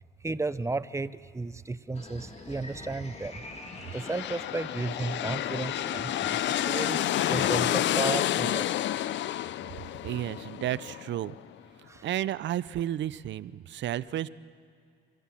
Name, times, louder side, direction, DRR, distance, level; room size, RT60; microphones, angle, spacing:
voice 1, 0.2-3.4 3.9-8.8 11.9-12.1, right 3 dB, 15° right, 15 dB, 0.6 m, -34 dB
sound 1, 1.9-7.7, left 2 dB, 35° left, 2.4 m, -44 dB
sound 2, 3.8-11.5, left 12 dB, 65° left, 0.5 m, -30 dB
voice 2, 10.0-11.3 12.0-14.3, right 12 dB, 65° right, 17 dB, 0.5 m, -32 dB
24.5 x 15.0 x 7.4 m, 2.4 s
cardioid pair, 90°, 20 cm